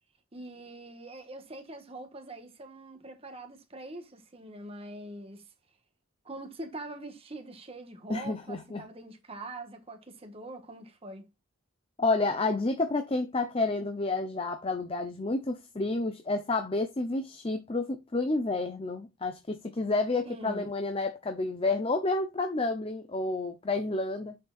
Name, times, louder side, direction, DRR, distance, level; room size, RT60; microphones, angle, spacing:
voice 1, 0.3-5.4 6.2-11.3 20.2-20.7, right 2 dB, 25° right, 1.4 m, -43 dB
voice 2, 8.1-8.9 12.0-24.4, left 3 dB, 25° left, 0.7 m, -30 dB
8.4 x 6.5 x 2.4 m
head